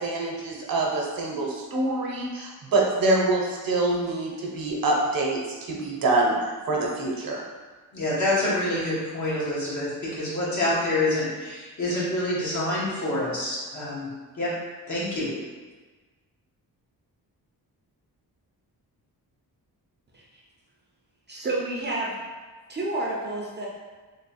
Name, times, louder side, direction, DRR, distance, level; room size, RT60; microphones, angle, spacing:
voice 1, 0.0-7.4, right 2 dB, 65° right, -1 dB, 0.8 m, -25 dB
voice 2, 7.9-14.1 14.3-14.5 14.9-15.3, left 1 dB, 50° left, -7 dB, 1.3 m, -27 dB
voice 3, 21.3-22.2 22.7-23.7, right 2 dB, 30° right, -4 dB, 0.6 m, -29 dB
3.3 x 2.2 x 4.1 m, 1.3 s
cardioid pair, 110°, 37 cm